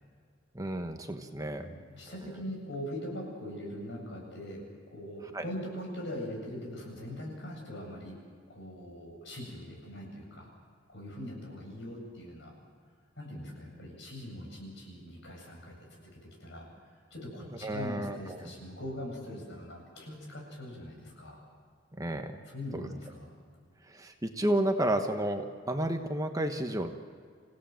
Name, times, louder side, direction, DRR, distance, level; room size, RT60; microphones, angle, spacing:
voice 1, 0.5-1.7 5.3-5.4 17.6-18.5 22.0-22.4 22.7-22.9 23.9-27.1, right 1 dB, 20° right, 5 dB, 1.2 m, -31 dB
voice 2, 1.6-4.6 4.9-8.2 8.5-10.5 10.9-12.5 13.2-21.4 22.4-23.3, left 1 dB, 65° left, -1 dB, 8.0 m, -42 dB
28.0 x 16.5 x 7.8 m, 2.1 s
head